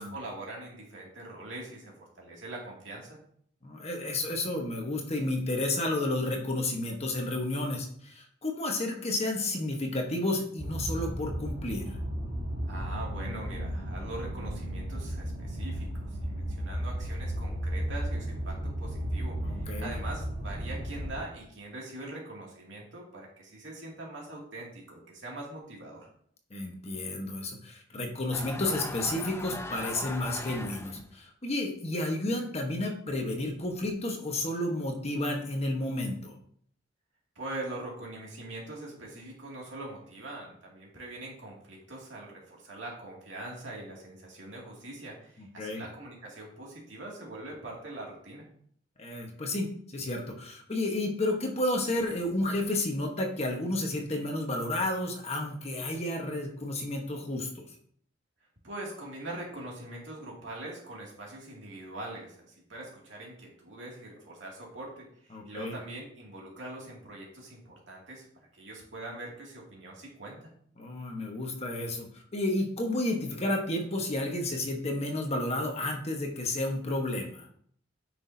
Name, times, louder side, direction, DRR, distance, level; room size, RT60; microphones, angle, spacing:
voice 1, 0.0-3.2 12.7-26.1 37.4-48.5 58.6-68.3 68.5-70.4, right 2 dB, 75° right, -2 dB, 2.5 m, -42 dB
voice 2, 3.6-11.9 19.4-19.9 26.5-36.4 45.4-45.8 49.0-57.7 65.3-65.7 70.8-77.5, left 1 dB, 35° left, 2 dB, 1.3 m, -31 dB
sound 1, 10.6-21.2, equal, 55° right, 3.2 m, -34 dB
sound 2, 28.3-31.1, left 2 dB, 15° left, 0.6 m, -39 dB
9.2 x 6.0 x 2.8 m, 0.62 s
head